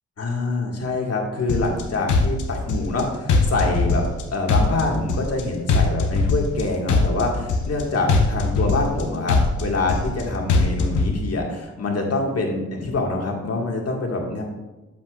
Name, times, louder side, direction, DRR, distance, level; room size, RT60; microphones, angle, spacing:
voice 1, 0.2-4.0 4.3-14.4, left 2 dB, 55° left, 0 dB, 1.9 m, -25 dB
sound 1, 1.5-1.8 2.1-3.0 3.3-4.2 4.5-5.4 5.7-6.6 6.9-7.8 8.1-9.0 9.3-10.2 10.5-11.1, left 3 dB, 85° left, 1.0 m, -20 dB
8.3 x 7.9 x 2.5 m, 1.1 s
cardioid pair, 55°, 29 cm